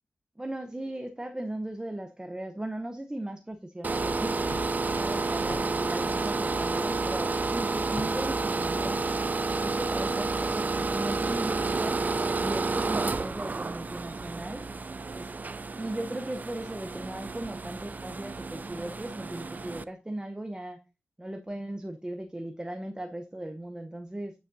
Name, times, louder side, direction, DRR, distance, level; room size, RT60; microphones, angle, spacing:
voice 1, 0.4-4.5 5.0-9.1 9.6-14.7 15.1-15.3 15.8-20.8 21.2-24.3, right 1 dB, 15° right, 7 dB, 0.8 m, -37 dB
sound 1, 3.8-19.8, right 3 dB, 40° right, 0.4 m, -30 dB
sound 2, 4.4-9.9, left 2 dB, 75° left, 2.8 m, -46 dB
9.0 x 6.3 x 2.7 m, 0.29 s
cardioid pair, 50°, 4 cm